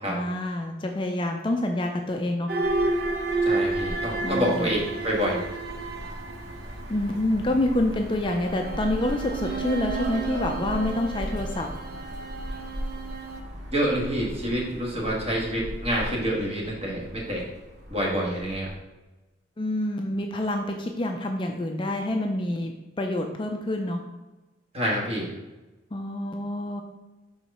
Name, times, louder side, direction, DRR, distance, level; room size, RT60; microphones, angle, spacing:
voice 1, 0.1-2.5 4.2-4.7 6.9-11.7 19.6-24.0 25.9-26.8, left 1 dB, 25° left, 3 dB, 0.4 m, -27 dB
sound 1, 2.5-7.2 8.2-13.4, right 3 dB, 55° right, 0.6 m, -31 dB
sound 2, 2.6-18.8, equal, 75° right, 1.8 m, -38 dB
voice 2, 3.4-5.4 13.7-17.5 17.9-18.7 24.7-25.3, equal, 30° right, -3 dB, 1.5 m, -27 dB
4.7 x 3.9 x 5.3 m, 1.1 s
head